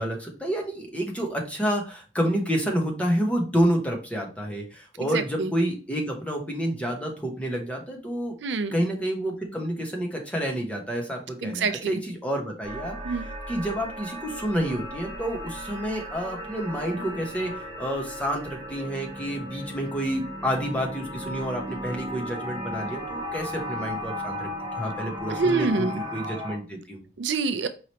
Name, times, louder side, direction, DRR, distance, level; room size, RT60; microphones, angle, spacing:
voice 1, 0.0-8.3 8.7-24.5 24.8-27.0, equal, 5° left, 1 dB, 1.0 m, -29 dB
voice 2, 5.1-5.5 8.4-8.8 11.4-12.0 13.0-13.3 25.3-26.0 27.2-27.7, right 4 dB, 70° right, 10 dB, 0.4 m, -26 dB
sound 1, 12.6-26.5, equal, 25° right, 1.4 m, -36 dB
4.9 x 3.1 x 2.9 m, 0.35 s
head